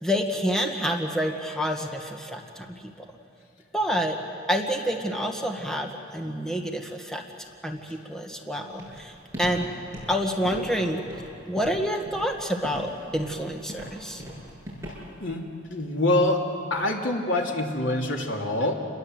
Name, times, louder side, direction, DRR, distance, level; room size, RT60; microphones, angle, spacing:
voice 1, 0.0-2.8 3.7-4.2 4.5-7.2 7.6-9.1 9.4-9.7 10.1-11.0 11.4-14.2, equal, 5° left, 2 dB, 1.6 m, -28 dB
Walk footsteps, 8.8-15.3, equal, 15° right, 7.9 m, -39 dB
voice 2, 15.2-18.7, left 1 dB, 80° left, 1 dB, 2.9 m, -25 dB
29.0 x 21.5 x 7.9 m, 2.5 s
head